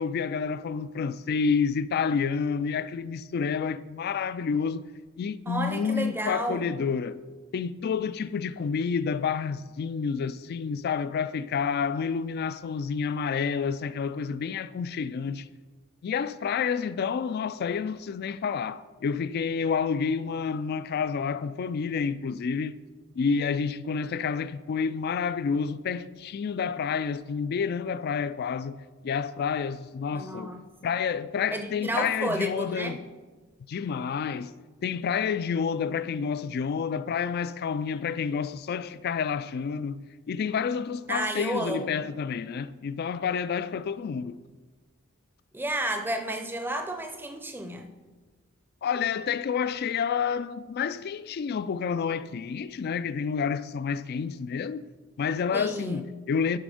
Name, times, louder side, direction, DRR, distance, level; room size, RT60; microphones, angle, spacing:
voice 1, 0.0-4.8 5.2-7.2 7.5-15.5 16.0-22.8 23.1-30.5 30.8-33.0 33.7-34.5 34.8-40.0 40.3-44.4 48.8-54.8 55.2-56.6, left 6 dB, 45° left, 0.3 m, -29 dB
voice 2, 5.5-6.7 30.1-30.7 31.5-33.0 41.1-42.1 45.5-47.9 55.5-56.1, right 1 dB, 10° right, 0.6 m, -32 dB
11.0 x 4.2 x 5.0 m
head